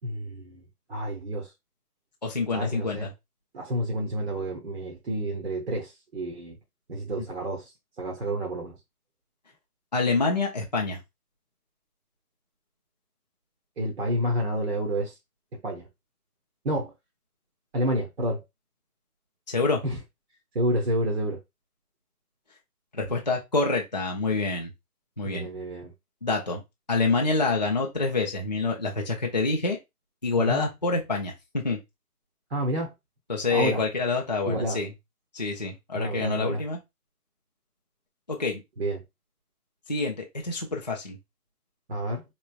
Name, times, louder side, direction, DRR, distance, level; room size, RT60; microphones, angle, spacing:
voice 1, 0.0-0.6 0.9-1.5 2.5-3.1 3.5-6.6 6.9-7.7 8.0-8.8 13.8-15.1 15.6-15.9 16.6-16.9 17.7-18.4 19.8-20.0 20.5-21.4 25.2-25.9 30.5-30.7 32.5-32.9 33.5-33.8 34.5-34.8 35.9-36.6 38.8-39.0 41.9-42.2, right 1 dB, 45° right, 0.9 m, -29 dB
voice 2, 2.2-3.1 9.9-11.0 19.5-19.8 22.9-24.7 25.2-25.5 26.2-26.6 26.9-29.8 30.2-31.8 33.3-34.9 35.3-36.8 38.3-38.6 39.9-41.2, left 3 dB, 30° left, 0.4 m, -27 dB
4.4 x 3.0 x 2.2 m
figure-of-eight pair, 140°, 47 cm